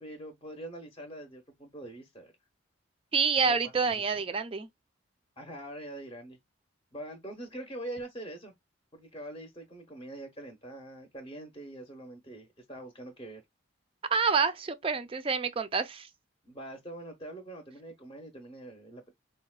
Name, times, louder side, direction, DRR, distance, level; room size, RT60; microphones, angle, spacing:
voice 1, 0.0-2.3 3.4-3.6 3.9-4.0 5.4-6.4 6.9-8.5 8.9-13.4 16.4-19.1, right 1 dB, 25° left, 0.7 m, -43 dB
voice 2, 3.1-4.7 14.1-16.1, right 5 dB, 30° right, 0.4 m, -27 dB
3.8 x 2.1 x 2.2 m
head